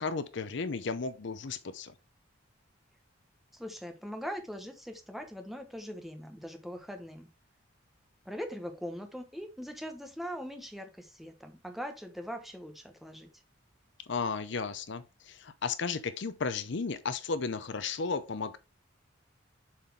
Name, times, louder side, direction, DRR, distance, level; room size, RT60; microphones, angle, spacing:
voice 1, 0.0-1.9 14.1-18.6, left 4 dB, 60° left, 0.7 m, -34 dB
voice 2, 3.5-7.3 8.2-13.3, equal, ahead, 1.1 m, -41 dB
7.2 x 4.2 x 3.5 m
head